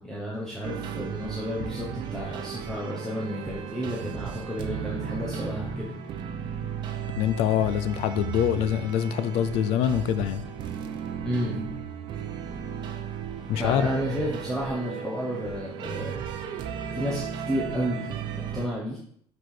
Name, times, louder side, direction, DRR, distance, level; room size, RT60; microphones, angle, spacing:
voice 1, 0.0-5.9 11.2-11.6 13.6-16.2 16.9-18.1 18.5-19.0, equal, 5° left, -5 dB, 1.1 m, -31 dB
sound 1, 0.6-18.7, right 7 dB, 50° right, 0.8 m, -35 dB
voice 2, 7.2-10.4 13.5-13.9, left 9 dB, 85° left, 13 dB, 0.6 m, -24 dB
6.2 x 4.7 x 5.0 m, 0.63 s
cardioid pair, 170°, 10 cm